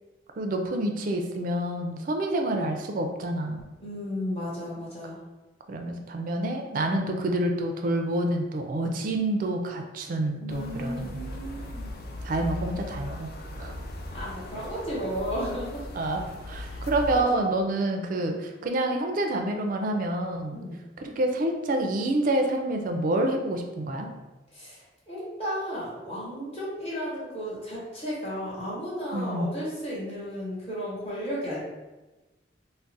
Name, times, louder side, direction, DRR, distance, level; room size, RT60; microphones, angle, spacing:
voice 1, 0.4-3.6 5.7-11.2 12.2-13.3 13.6-13.7 15.9-20.6 21.0-24.1 29.1-29.5, right 1 dB, 45° right, 3 dB, 0.3 m, -28 dB
voice 2, 3.8-5.2 10.3-12.0 14.1-15.9 16.7-16.9 17.1-17.5 20.5-20.8 24.5-31.6, equal, 35° left, -8 dB, 1.0 m, -34 dB
sound 1, 10.5-17.2, left 1 dB, 55° left, 0.4 m, -38 dB
2.4 x 2.1 x 3.9 m, 1.1 s
head